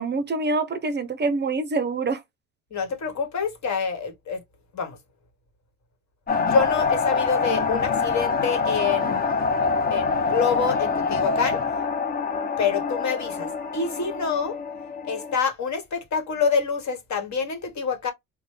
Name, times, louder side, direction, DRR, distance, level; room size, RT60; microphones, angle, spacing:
voice 1, 0.0-2.2, right 3 dB, 25° right, 0.6 m, -25 dB
voice 2, 2.7-4.4 4.7-5.0 6.4-9.3 9.9-11.6 12.6-14.6 15.0-18.1, left 5 dB, 45° left, 1.3 m, -26 dB
sound 1, 6.3-15.3, left 5 dB, 25° left, 0.6 m, -25 dB
3.0 x 2.2 x 3.2 m
supercardioid pair, 85°, 39 cm